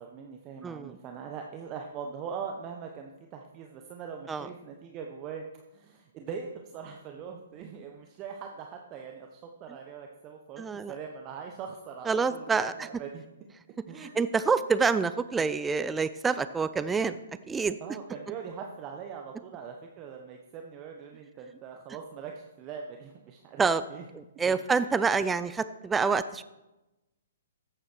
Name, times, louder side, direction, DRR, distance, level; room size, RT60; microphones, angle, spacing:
voice 1, 0.0-5.4 5.7-13.2 13.9-14.2 17.8-24.1 24.3-24.6, right 6 dB, 30° right, 3 dB, 1.1 m, -41 dB
voice 2, 10.6-10.9 12.1-12.7 14.0-17.2 17.5-17.8 23.6-23.8 24.4-26.4, right 5 dB, 10° right, 13 dB, 0.5 m, -27 dB
14.0 x 8.8 x 4.6 m, 1.0 s
hypercardioid pair, 130°, 0 cm